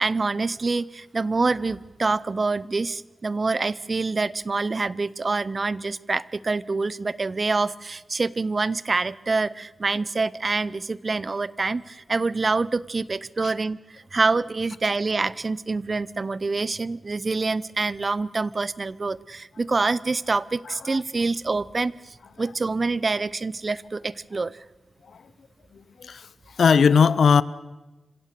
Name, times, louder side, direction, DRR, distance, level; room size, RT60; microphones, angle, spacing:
voice 1, 0.0-24.6, right 3 dB, 45° right, 0.6 m, -26 dB
voice 2, 25.7-26.3 26.6-27.4, left 6 dB, 80° left, 0.6 m, -19 dB
26.0 x 16.5 x 6.8 m
cardioid pair, 65°, 0 cm